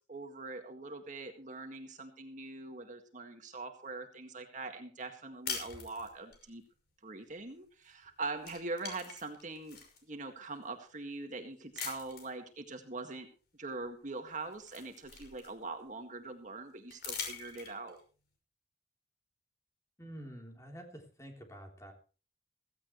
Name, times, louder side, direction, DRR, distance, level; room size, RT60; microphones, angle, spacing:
voice 1, 0.1-6.6 7.0-9.8 10.1-13.3 13.6-18.0, right 3 dB, 45° right, 5 dB, 1.9 m, -42 dB
sound 1, 5.5-6.5 7.9-8.1 8.4-10.0 10.6-10.7 11.8-12.4 13.8-13.9 14.3-15.8 16.9-18.0, left 5 dB, 60° left, 5.7 m, -43 dB
voice 2, 20.0-21.9, equal, 20° left, 2 dB, 3.5 m, -48 dB
16.5 x 16.0 x 3.2 m, 0.37 s
head